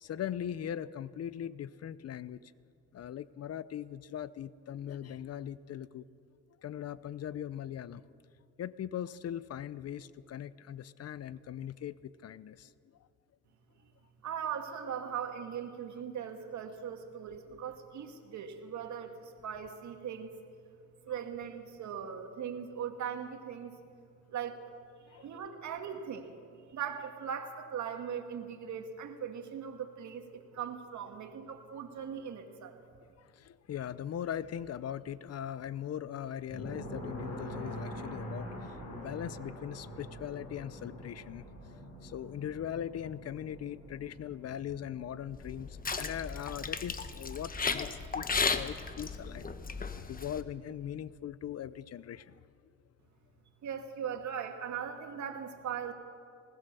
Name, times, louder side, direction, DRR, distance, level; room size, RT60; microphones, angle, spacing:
voice 1, 0.0-2.5 2.9-6.1 6.6-8.0 8.6-12.7 17.5-17.6 21.1-21.2 25.1-25.3 33.2-41.5 42.0-49.4 50.1-52.4, left 10 dB, 55° left, 17 dB, 0.7 m, -40 dB
voice 2, 14.2-20.3 21.1-23.7 24.3-24.6 25.2-26.3 26.7-32.8 53.6-55.9, right 8 dB, 70° right, 5 dB, 2.1 m, -39 dB
sound 1, 36.5-47.0, equal, 80° left, 6.2 m, -45 dB
sound 2, 45.3-50.4, left 4 dB, 30° left, 1.2 m, -35 dB
19.5 x 19.0 x 6.9 m, 2.3 s
cardioid pair, 90°, 30 cm